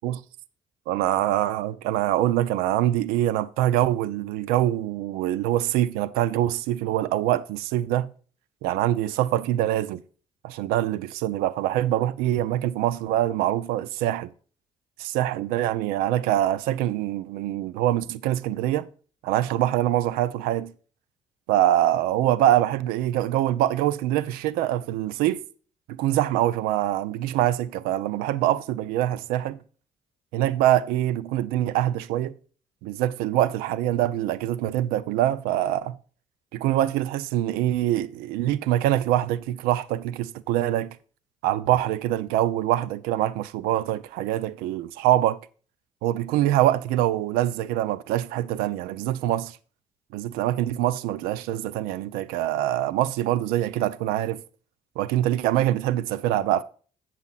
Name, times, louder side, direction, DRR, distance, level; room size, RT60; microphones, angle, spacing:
voice 1, 0.9-8.1 8.6-10.0 10.4-14.3 15.0-18.9 19.2-20.7 21.5-25.4 25.9-29.6 30.3-32.3 32.8-36.0 36.5-41.0 41.4-45.4 46.0-49.6 50.1-54.4 55.0-56.6, right 13 dB, 70° right, 0.5 m, -24 dB
7.5 x 7.1 x 4.0 m
hypercardioid pair, 50°, 16 cm